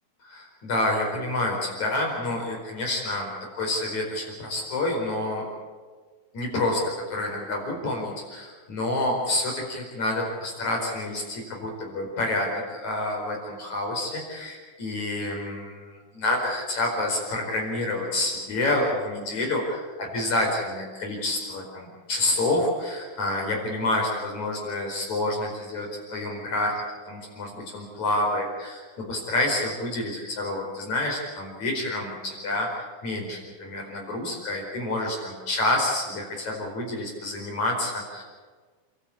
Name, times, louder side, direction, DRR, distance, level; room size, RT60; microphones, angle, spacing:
voice 1, 0.2-5.5 6.3-6.8 7.1-26.7 27.1-28.8 29.1-38.2, left 1 dB, 50° left, 0 dB, 6.0 m, -28 dB
29.0 x 13.0 x 8.6 m, 1.4 s
omnidirectional pair, 4.3 m